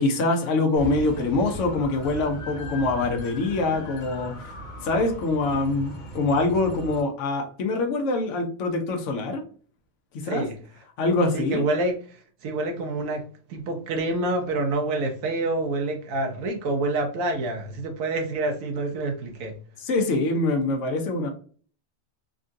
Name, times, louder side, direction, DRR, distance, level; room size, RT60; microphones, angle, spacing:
voice 1, 0.0-4.5 4.8-9.4 10.2-10.5 11.0-11.6 19.8-21.3, left 2 dB, 65° left, 1.1 m, -24 dB
sound 1, 0.8-7.0, equal, 80° left, 1.3 m, -38 dB
voice 2, 10.2-10.6 11.3-19.6, right 2 dB, 75° right, 1.0 m, -27 dB
3.7 x 2.3 x 2.6 m
omnidirectional pair, 1.4 m